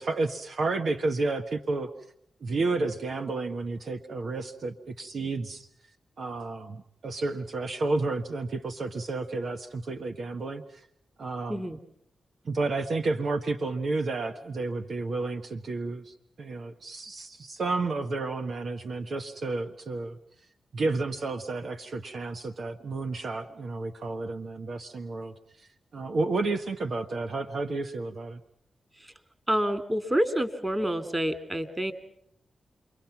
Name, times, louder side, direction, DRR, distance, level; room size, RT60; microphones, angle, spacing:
voice 1, 0.0-1.9 2.4-5.7 6.2-10.8 11.2-11.6 12.4-20.2 20.7-28.4, right 3 dB, 70° right, 6 dB, 1.3 m, -31 dB
voice 2, 29.5-31.9, equal, 20° right, 11 dB, 3.3 m, -28 dB
30.0 x 23.0 x 6.0 m, 0.75 s
supercardioid pair, 45°, 0 cm